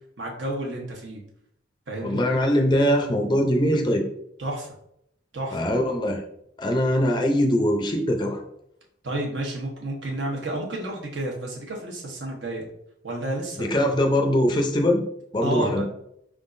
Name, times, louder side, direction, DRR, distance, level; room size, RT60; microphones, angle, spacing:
voice 1, 0.2-1.2 1.9-2.2 4.4-4.7 5.3-5.6 9.0-12.7 13.0-13.8 15.4-15.8, right 1 dB, 75° right, -1 dB, 1.1 m, -31 dB
voice 2, 2.0-4.0 5.5-6.2 6.6-8.4 13.6-15.0 15.3-15.8, equal, 25° left, 2 dB, 0.5 m, -22 dB
4.7 x 3.6 x 2.6 m, 0.74 s
head